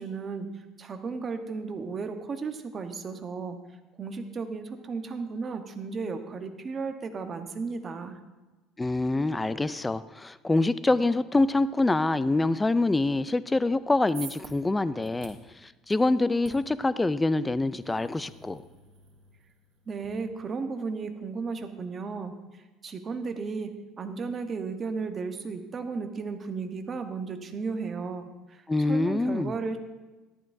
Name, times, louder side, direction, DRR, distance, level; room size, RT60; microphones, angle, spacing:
voice 1, 0.0-3.6 4.0-8.2 19.9-29.8, right 4 dB, 30° right, 6 dB, 1.0 m, -34 dB
voice 2, 8.8-15.4 15.6-18.6 28.7-29.5, left 2 dB, 10° left, 15 dB, 0.3 m, -25 dB
sound 1, 13.7-20.1, right 6 dB, 65° right, 2.2 m, -50 dB
13.5 x 11.0 x 2.6 m, 1.2 s
cardioid pair, 125°, 0 cm